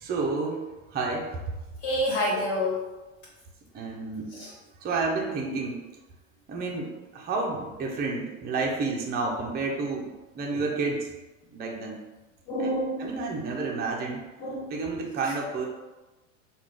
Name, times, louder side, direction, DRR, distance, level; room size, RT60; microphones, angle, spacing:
voice 1, 0.0-1.5 3.7-5.8 6.5-11.1 11.5-12.0 12.6-14.2 14.7-15.7, right 3 dB, 25° right, -1 dB, 0.6 m, -30 dB
voice 2, 1.8-2.8 4.3-4.5 10.5-10.6 12.5-13.1 14.4-14.7, left 1 dB, 65° left, -7 dB, 1.4 m, -28 dB
3.5 x 2.4 x 3.4 m, 1.1 s
hypercardioid pair, 95°, 41 cm